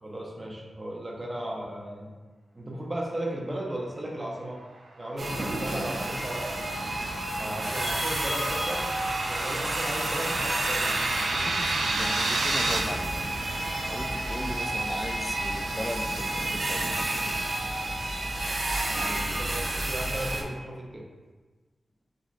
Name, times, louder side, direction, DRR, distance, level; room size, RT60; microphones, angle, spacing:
voice 1, 0.0-2.1 2.5-4.6 5.0-6.7 7.4-8.9 9.3-10.9 19.4-21.0, right 1 dB, 30° right, -2 dB, 0.9 m, -35 dB
sound 1, 5.1-12.8, right 2 dB, 90° right, 0.6 m, -32 dB
sound 2, 5.2-20.4, right 1 dB, 60° right, 0.9 m, -30 dB
voice 2, 11.3-13.2 13.9-17.5 18.9-19.5, left 1 dB, 15° left, 4 dB, 0.5 m, -38 dB
7.4 x 2.7 x 2.5 m, 1.3 s
cardioid pair, 65°, 0 cm